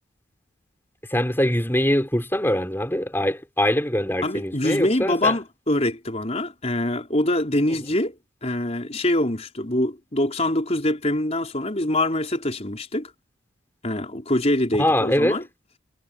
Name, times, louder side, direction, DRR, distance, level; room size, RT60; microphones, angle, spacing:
voice 1, 1.1-5.3 14.8-15.4, left 1 dB, 10° left, 5.6 m, -23 dB
voice 2, 4.2-8.1 8.4-13.1 13.8-15.4, left 1 dB, 30° left, 4.6 m, -24 dB
head